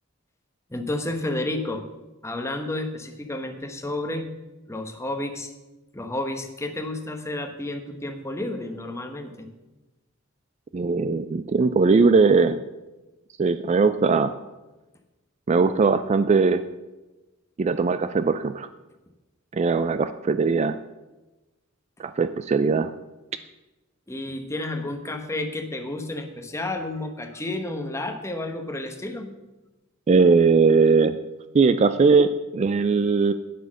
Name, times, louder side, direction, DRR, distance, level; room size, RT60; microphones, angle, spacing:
voice 1, 0.7-1.8 2.2-4.3 4.7-5.5 5.9-9.5 24.1-29.3, left 2 dB, 15° left, 5 dB, 1.0 m, -31 dB
voice 2, 10.7-12.6 13.4-14.3 15.5-16.6 17.6-18.7 19.5-20.8 22.0-22.9 30.1-31.2 31.5-33.3, right 4 dB, 35° right, 12 dB, 0.3 m, -20 dB
9.4 x 7.9 x 6.3 m, 1.1 s
head